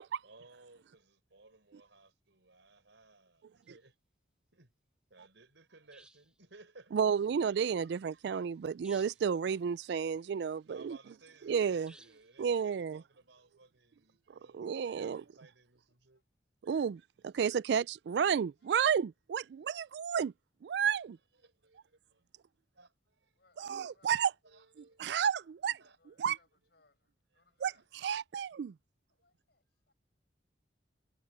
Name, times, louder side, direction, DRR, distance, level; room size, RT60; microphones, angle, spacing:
voice 1, 0.2-4.0 4.5-4.7 5.1-7.0 7.7-7.9 10.6-16.2 20.8-21.0 21.4-22.2 22.7-23.4 24.4-25.1 25.8-26.0 27.7-27.9, right 3 dB, 85° right, 5.0 m, -60 dB
sound 1, 3.6-3.8 5.9-6.4 8.8-9.3 11.9-12.4, right 1 dB, 5° right, 0.8 m, -59 dB
voice 2, 6.9-11.0 11.4-11.9 12.4-13.0 14.3-15.2 16.6-20.3 20.6-21.2 23.6-24.3 25.0-25.8 26.2-26.4 27.6-27.7 28.0-28.7, right 7 dB, 65° right, 0.3 m, -31 dB
voice 3, 23.3-24.4 25.1-27.9 29.1-29.9, left 3 dB, 60° left, 7.3 m, -73 dB
head